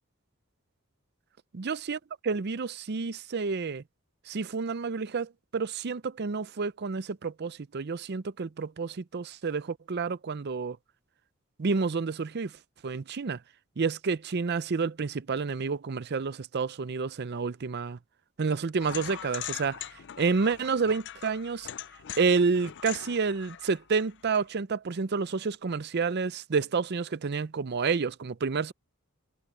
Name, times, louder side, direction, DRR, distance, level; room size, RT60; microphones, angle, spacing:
voice 1, 1.6-2.0 2.2-3.8 4.3-10.8 11.6-12.6 12.8-13.4 13.8-18.0 18.4-19.9 20.2-21.7 22.2-28.7, right 4 dB, 50° right, 0.5 m, -29 dB
sound 1, 18.8-24.4, left 11 dB, 55° left, 0.5 m, -41 dB
head